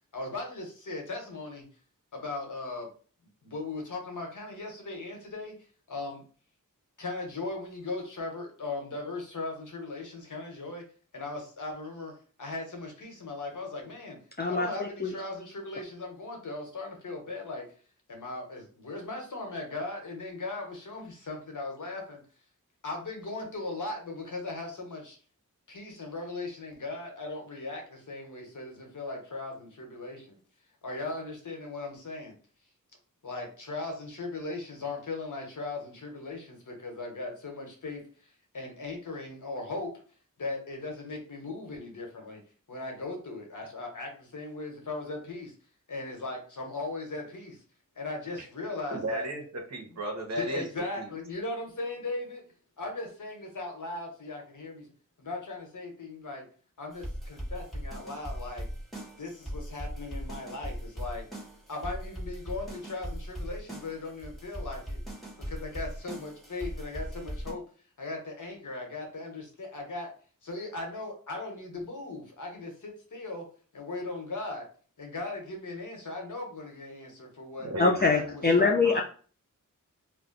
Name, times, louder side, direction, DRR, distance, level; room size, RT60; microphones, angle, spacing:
voice 1, 0.1-1.6 2.1-2.9 3.4-5.6 5.9-6.2 7.0-10.8 11.1-12.1 12.4-14.2 14.5-17.7 18.1-22.2 22.8-25.2 25.7-30.4 30.8-32.3 33.2-39.9 40.4-42.4 42.7-45.5 45.9-47.6 48.0-49.3 50.4-52.4 52.8-54.9 55.2-56.5 56.8-58.7 59.2-61.3 61.7-65.0 65.5-67.6 68.0-70.1 70.4-73.5 73.7-74.7 75.0-77.7 78.1-79.0, left 2 dB, 65° left, 2 dB, 1.0 m, -38 dB
voice 2, 14.4-15.1 77.8-79.0, left 4 dB, 30° left, 0 dB, 0.4 m, -24 dB
voice 3, 48.9-50.6 51.0-51.1 77.6-78.8, right 1 dB, 50° right, 0 dB, 1.0 m, -35 dB
sound 1, 56.9-67.5, equal, ahead, 1.2 m, -39 dB
2.4 x 2.2 x 3.8 m, 0.41 s
wide cardioid pair, 70°, 33 cm